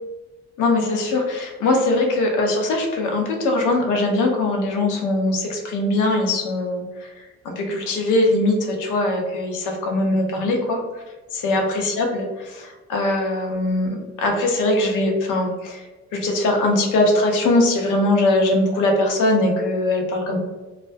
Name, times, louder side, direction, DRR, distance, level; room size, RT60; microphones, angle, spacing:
voice 1, 0.6-10.8 11.3-12.2 12.5-15.8 16.1-20.4, left 2 dB, 85° left, 2 dB, 0.6 m, -21 dB
2.4 x 2.1 x 2.4 m, 1.2 s
cardioid pair, 90°, 30 cm